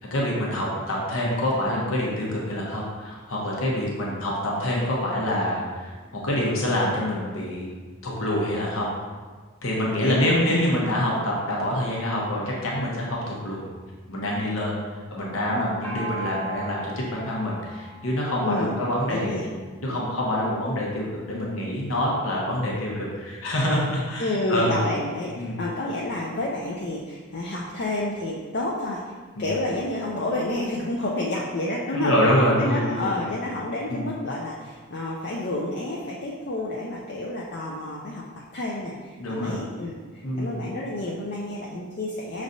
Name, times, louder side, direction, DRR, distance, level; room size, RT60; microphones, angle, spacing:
voice 1, 0.1-7.7 8.0-8.9 9.6-13.7 14.1-14.8 15.1-19.4 19.8-24.7 25.4-25.6 29.4-29.5 31.9-33.2 33.9-34.0 39.2-39.6 40.2-40.6, left 1 dB, 80° left, -4 dB, 0.9 m, -26 dB
voice 2, 10.0-10.6 18.4-18.8 19.1-19.5 19.9-20.0 24.2-29.1 29.4-32.1 32.6-42.4, left 1 dB, 50° left, -3 dB, 0.4 m, -30 dB
Gong, 15.8-19.3, right 2 dB, 10° left, 0.6 m, -38 dB
6.2 x 3.2 x 2.6 m, 1.4 s
head